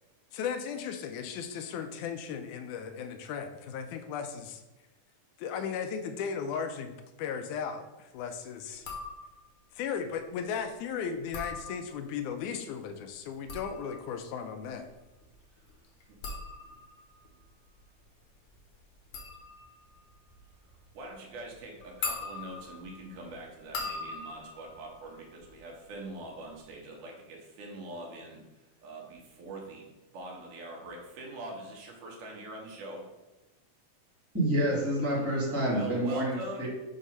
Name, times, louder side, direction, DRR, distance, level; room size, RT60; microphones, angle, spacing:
voice 1, 0.3-4.6 5.4-6.9 7.2-8.9 9.7-14.9, left 7 dB, 80° left, 7 dB, 1.9 m, -36 dB
sound 1, 8.8-9.6 11.1-12.2 13.2-25.9 26.2-26.7, left 3 dB, 60° left, 1.4 m, -42 dB
voice 2, 20.9-28.4 28.8-29.9 30.1-33.1 35.6-36.7, right 1 dB, 80° right, -1 dB, 2.7 m, -43 dB
voice 3, 34.3-36.7, right 1 dB, 5° right, -7 dB, 1.3 m, -28 dB
6.2 x 2.8 x 5.3 m, 1.0 s
omnidirectional pair, 3.6 m